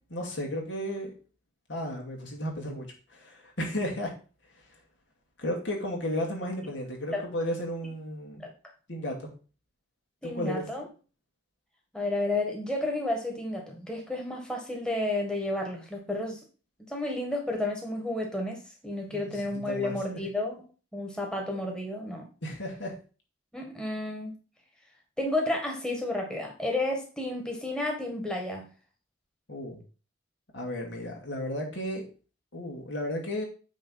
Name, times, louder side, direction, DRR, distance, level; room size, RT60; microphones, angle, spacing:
voice 1, 0.1-1.1 1.7-4.1 5.4-8.4 8.9-9.3 10.2-10.7 19.0-19.4 19.7-20.0 22.4-23.0 29.5-29.8 30.5-32.1 32.5-33.4, left 1 dB, 70° left, 0 dB, 2.4 m, -34 dB
voice 2, 10.2-10.9 11.9-16.4 16.9-20.6 20.9-22.3 23.5-24.3 25.2-28.6, left 2 dB, 5° left, 0 dB, 1.5 m, -31 dB
8.9 x 3.4 x 5.7 m, 0.36 s
head